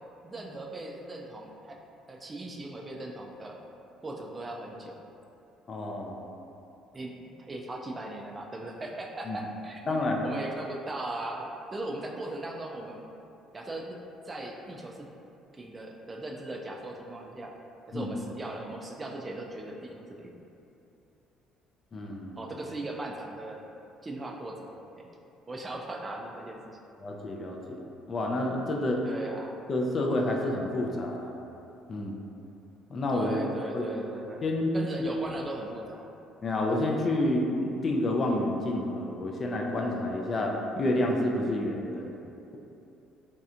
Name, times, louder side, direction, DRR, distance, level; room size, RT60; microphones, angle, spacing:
voice 1, 0.2-1.8 2.1-3.6 4.0-5.0 6.9-13.0 13.5-14.0 14.3-15.1 15.5-17.5 17.9-20.3 22.4-23.6 24.0-24.6 25.0-25.1 25.5-26.8 29.0-29.6 33.1-34.5 34.7-36.0, right 2 dB, 25° right, 0 dB, 0.4 m, -38 dB
voice 2, 5.7-6.2 9.3-9.4 9.9-10.2 17.9-18.1 21.9-22.4 27.0-27.8 28.1-29.0 29.7-31.3 31.9-32.1 32.9-33.3 33.7-33.9 34.4-34.7 35.0-35.1 36.4-42.1, left 1 dB, 40° left, 0 dB, 0.4 m, -29 dB
3.2 x 2.7 x 2.4 m, 2.8 s
supercardioid pair, 75°, 0 cm